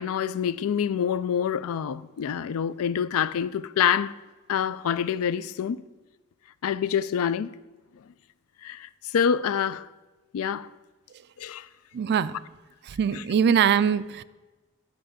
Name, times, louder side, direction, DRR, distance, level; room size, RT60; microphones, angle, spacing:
voice 1, 0.0-4.1 4.5-5.8 6.6-7.6 8.6-9.9 10.3-10.7 11.4-11.7, left 8 dB, 65° left, 0.3 m, -26 dB
voice 2, 11.9-12.4 12.9-14.2, right 7 dB, 50° right, 0.3 m, -22 dB
11.0 x 5.6 x 5.0 m
head